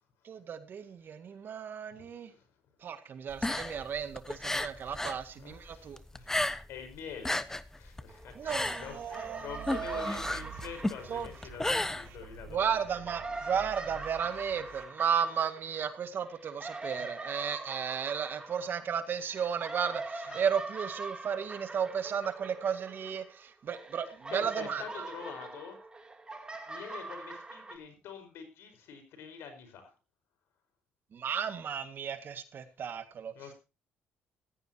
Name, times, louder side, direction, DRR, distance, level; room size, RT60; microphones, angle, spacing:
voice 1, 0.2-2.3 2.8-6.0 8.4-10.2 11.1-11.3 12.5-24.8 31.1-33.3, right 7 dB, 55° right, 9 dB, 1.9 m, -34 dB
voice 2, 1.9-2.5 4.5-5.1 5.3-7.4 7.7-12.6 13.7-13.9 14.1-14.6 15.0-15.1 15.7-15.8 17.0-17.5 20.2-20.4 24.3-25.8 26.7-29.9 33.3-33.5, left 7 dB, 75° left, 8 dB, 4.9 m, -46 dB
sound 1, 3.3-5.2 5.5-6.8 7.1-12.6, left 1 dB, 10° left, 1.0 m, -33 dB
sound 2, 8.1-8.7 9.0-12.3 12.8-23.4 23.7-27.8, right 3 dB, 20° right, 3.0 m, -43 dB
sound 3, 9.5-14.8, right 7 dB, 80° right, 3.5 m, -49 dB
16.0 x 14.5 x 2.9 m, 0.30 s
cardioid pair, 85°, 4 cm